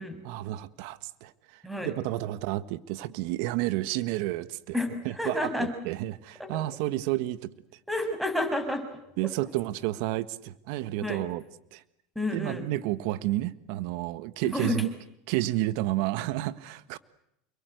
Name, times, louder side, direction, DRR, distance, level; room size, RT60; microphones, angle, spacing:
voice 1, 0.2-4.8 5.0-7.5 9.2-11.4 11.7-11.8 12.3-14.9 15.3-17.0, right 16 dB, 70° right, 14 dB, 1.5 m, -31 dB
voice 2, 1.6-1.9 4.7-4.9 5.2-5.7 6.4-6.5 7.9-9.0 11.0-11.2 12.1-12.6 14.5-14.8, left 1 dB, ahead, 8 dB, 6.8 m, -30 dB
29.5 x 23.0 x 8.1 m, 0.79 s
hypercardioid pair, 95°, 0 cm